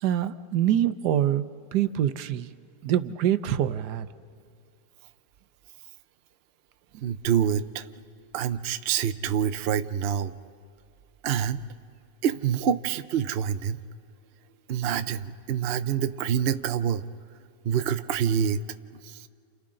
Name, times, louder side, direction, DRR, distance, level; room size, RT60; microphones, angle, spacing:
voice 1, 0.0-1.4 1.7-2.5 2.8-4.1, right 11 dB, 85° right, 13 dB, 1.3 m, -25 dB
voice 2, 7.0-7.9 8.3-10.3 11.2-11.6 12.2-13.8 14.7-17.0 17.6-18.6 19.0-19.3, right 8 dB, 60° right, 11 dB, 0.6 m, -26 dB
30.0 x 29.0 x 3.8 m, 2.3 s
omnidirectional pair, 1.7 m